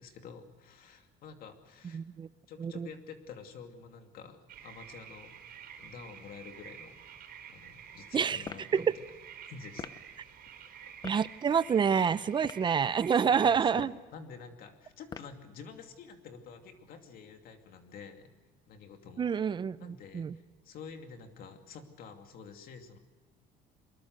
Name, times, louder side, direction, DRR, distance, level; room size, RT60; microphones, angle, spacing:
voice 1, 0.0-2.0 2.5-5.4 5.8-6.9 7.5-8.9 9.5-9.9 13.2-18.3 18.7-19.3 19.8-23.0, left 5 dB, 55° left, 5 dB, 2.6 m, -49 dB
voice 2, 1.9-2.3 2.6-2.9 8.1-8.4 8.7-8.9 11.0-13.9 19.2-20.4, right 7 dB, 25° right, 17 dB, 0.6 m, -28 dB
sound 1, 4.5-13.6, right 8 dB, 60° right, 4.3 m, -50 dB
sound 2, 8.4-8.7 9.8-10.0 11.0-11.2 12.3-12.7 13.7-14.1 15.1-15.4, left 6 dB, 25° left, 0.8 m, -43 dB
23.5 x 21.5 x 6.6 m, 1.3 s
cardioid pair, 135°, 17 cm